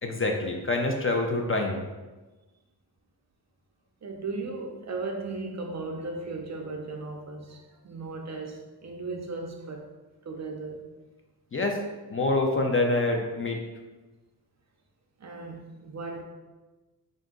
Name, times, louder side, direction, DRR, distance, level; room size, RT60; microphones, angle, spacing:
voice 1, 0.0-1.8 11.5-11.8 12.1-13.6, left 2 dB, 35° left, 2 dB, 0.4 m, -26 dB
voice 2, 4.0-9.9 10.2-10.8 15.2-16.2, right 3 dB, 45° right, 2 dB, 0.5 m, -36 dB
3.8 x 2.5 x 3.6 m, 1.2 s
wide cardioid pair, 115°, 40 cm